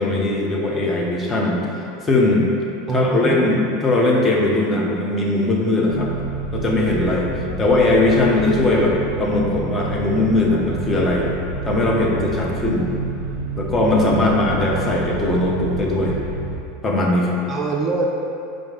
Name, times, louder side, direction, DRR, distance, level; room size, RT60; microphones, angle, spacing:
voice 1, 0.0-1.6 2.0-2.5 2.9-6.1 6.5-7.3 7.6-11.3 11.6-12.9 13.6-16.2 16.8-17.4, left 2 dB, 20° left, -2 dB, 0.6 m, -19 dB
voice 2, 2.9-3.6 17.5-18.1, right 3 dB, 30° right, -1 dB, 0.4 m, -25 dB
sound 1, 5.9-16.6, right 3 dB, 85° left, 0.7 m, -29 dB
4.5 x 2.5 x 3.8 m, 2.6 s
figure-of-eight pair, 80°, 0 cm